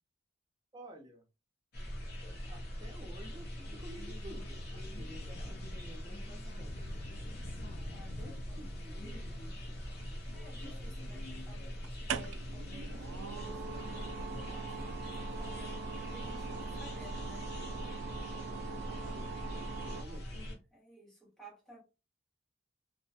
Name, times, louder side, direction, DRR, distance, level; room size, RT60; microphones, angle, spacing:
voice 1, 0.7-1.2 2.5-4.6 4.9-6.8 8.2-9.4 18.6-19.3 19.8-20.2, right 1 dB, 20° right, 0.5 m, -52 dB
sound 1, 1.7-20.5, equal, 55° left, 0.8 m, -42 dB
Thunder / Rain, 3.9-16.3, left 1 dB, 40° left, 0.3 m, -52 dB
voice 2, 7.9-8.7 10.3-17.5 19.9-21.8, right 1 dB, ahead, 0.8 m, -56 dB
sound 2, 9.7-10.4 11.8-20.0, right 6 dB, 85° right, 0.3 m, -42 dB
2.3 x 2.1 x 2.7 m
head